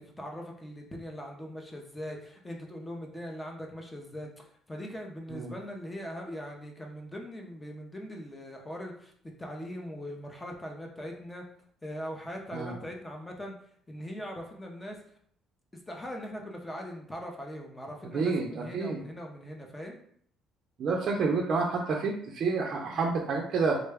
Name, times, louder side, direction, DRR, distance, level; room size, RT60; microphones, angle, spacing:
voice 1, 0.0-9.1 9.4-11.4 11.8-13.5 13.9-15.0 15.9-20.0, equal, 10° left, 1 dB, 0.6 m, -40 dB
voice 2, 18.1-19.0 20.8-23.8, right 4 dB, 45° right, -1 dB, 0.4 m, -29 dB
3.6 x 2.2 x 3.3 m, 0.63 s
cardioid pair, 150°, 0 cm